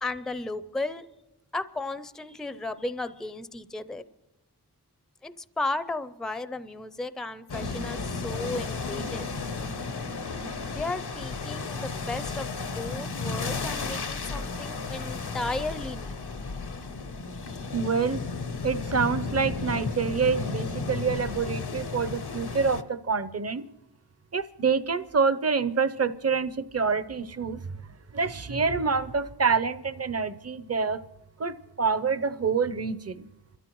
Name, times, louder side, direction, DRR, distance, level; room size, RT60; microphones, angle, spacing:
voice 1, 0.0-1.0 1.5-4.0 5.2-9.3 10.7-16.3, left 2 dB, ahead, 14 dB, 0.4 m, -34 dB
sound 1, 7.5-22.8, left 4 dB, 85° left, 0.9 m, -33 dB
voice 2, 17.7-18.2 18.6-23.6 24.3-27.7 28.1-31.0 31.4-33.3, right 5 dB, 40° right, 13 dB, 0.6 m, -27 dB
29.0 x 13.5 x 3.0 m, 0.99 s
wide cardioid pair, 60°, 39 cm